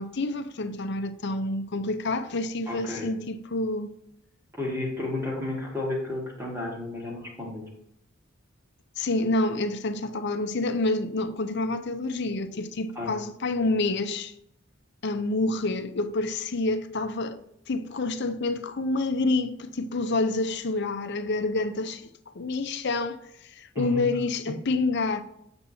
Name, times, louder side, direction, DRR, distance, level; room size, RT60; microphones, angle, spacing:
voice 1, 0.0-3.9 9.0-14.3 15.0-17.4 17.7-25.2, left 2 dB, 55° left, 0.6 m, -28 dB
voice 2, 2.7-3.1 4.6-7.6 13.0-13.1 23.8-24.1, left 2 dB, 10° right, 1.9 m, -32 dB
7.9 x 7.0 x 2.8 m
head